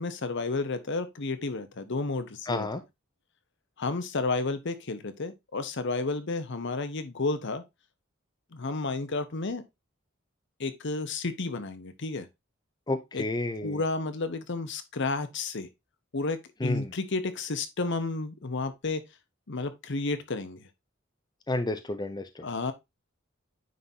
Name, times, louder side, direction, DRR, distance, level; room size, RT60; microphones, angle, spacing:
voice 1, 0.0-2.7 3.8-7.6 8.5-9.6 10.6-12.3 13.1-13.2 13.6-15.7 16.1-19.0 19.5-20.6 22.4-22.7, left 3 dB, 60° left, 0.9 m, -31 dB
voice 2, 2.5-2.8 12.9-13.8 16.6-16.9 21.5-22.5, left 2 dB, 20° left, 0.5 m, -31 dB
9.4 x 3.9 x 2.7 m
head